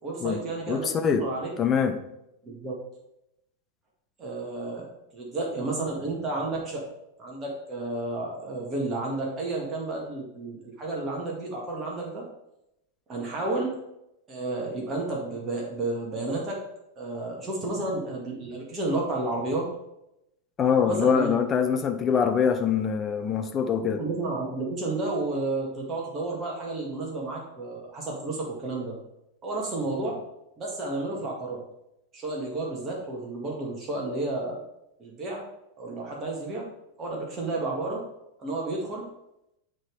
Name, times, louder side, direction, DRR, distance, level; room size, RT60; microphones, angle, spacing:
voice 1, 0.0-0.9 1.2-1.5 2.4-2.7 4.2-4.9 5.1-6.9 7.2-12.3 13.1-13.8 14.3-16.6 17.0-19.7 20.9-21.4 23.9-29.0 29.4-30.2 30.6-31.6 32.1-34.6 35.0-35.4 35.8-36.7 37.0-38.1 38.4-39.1, right 2 dB, 25° right, -2 dB, 1.8 m, -31 dB
voice 2, 0.7-1.3 1.6-2.0 20.6-24.0, left 7 dB, 25° left, 7 dB, 0.7 m, -24 dB
8.7 x 3.7 x 4.8 m, 0.85 s
figure-of-eight pair, 90°, 0 cm